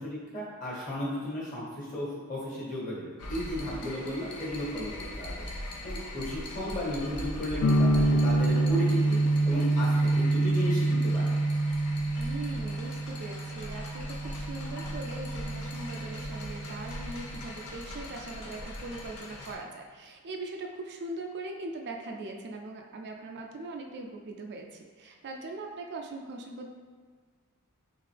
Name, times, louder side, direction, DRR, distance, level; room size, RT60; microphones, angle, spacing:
voice 1, 0.0-5.5 5.8-11.3, equal, 35° left, -6 dB, 1.4 m, -34 dB
sound 1, 3.2-19.6, left 1 dB, 85° left, 0.7 m, -41 dB
sound 2, 7.6-17.4, right 2 dB, 65° left, 0.3 m, -27 dB
voice 2, 12.2-26.7, right 2 dB, 50° right, 2 dB, 0.4 m, -41 dB
3.7 x 3.7 x 3.3 m, 1.5 s
head